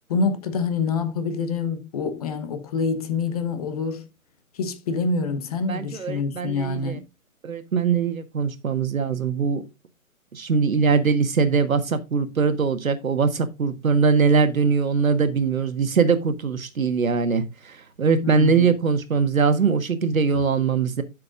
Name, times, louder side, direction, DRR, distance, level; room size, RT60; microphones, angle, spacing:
voice 1, 0.1-4.1 4.5-7.0 18.2-18.7, left 4 dB, 25° left, 1.1 m, -26 dB
voice 2, 5.7-7.0 7.4-9.6 10.3-21.0, right 5 dB, 70° right, 1.6 m, -22 dB
12.0 x 6.6 x 2.5 m
figure-of-eight pair, 145°, 43 cm